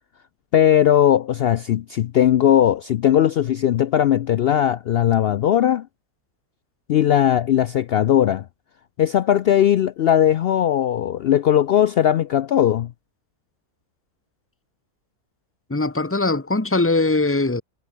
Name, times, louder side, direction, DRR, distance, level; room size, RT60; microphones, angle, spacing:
voice 1, 0.5-5.9 6.9-8.5 9.0-12.9, left 10 dB, 90° left, 0.5 m, -18 dB
voice 2, 15.7-17.6, left 3 dB, 10° left, 1.5 m, -21 dB
omnidirectional pair, 1.6 m